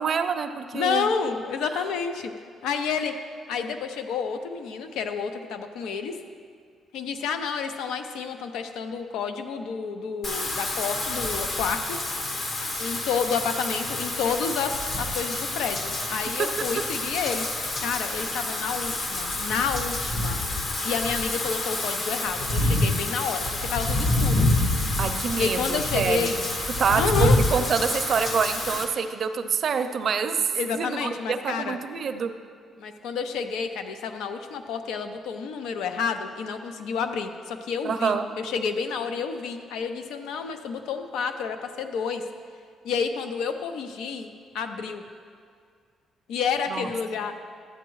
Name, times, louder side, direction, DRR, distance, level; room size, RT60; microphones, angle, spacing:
voice 1, 0.0-1.1 25.0-26.3 26.8-30.4 30.7-32.3 37.8-38.2 46.7-46.9, right 6 dB, 55° right, 8 dB, 0.5 m, -26 dB
voice 2, 0.7-2.3 2.6-3.1 3.5-6.2 6.9-12.0 12.8-17.5 17.8-20.4 20.8-24.4 25.4-26.4 26.9-27.4 30.5-31.8 32.8-42.2 42.8-45.0 46.3-47.4, left 6 dB, 90° left, 7 dB, 0.5 m, -29 dB
Wind / Rain, 10.2-28.8, left 2 dB, 55° left, 1.2 m, -27 dB
13.0 x 7.8 x 3.1 m, 2.1 s
cardioid pair, 90°, 0 cm